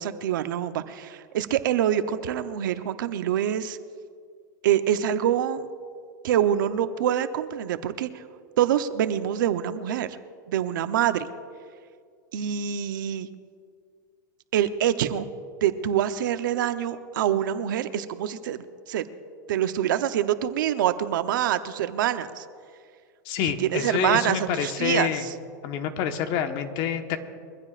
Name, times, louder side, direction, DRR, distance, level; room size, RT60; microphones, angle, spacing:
voice 1, 0.0-3.8 4.6-5.7 6.2-8.2 8.6-10.1 10.5-11.3 12.3-13.3 14.5-15.3 15.6-19.0 19.5-22.4 23.6-25.3, right 10 dB, 75° right, 10 dB, 0.8 m, -25 dB
voice 2, 23.2-25.3 25.6-27.2, left 8 dB, 50° left, 6 dB, 1.3 m, -27 dB
23.0 x 15.0 x 2.5 m, 2.2 s
supercardioid pair, 130°, 11 cm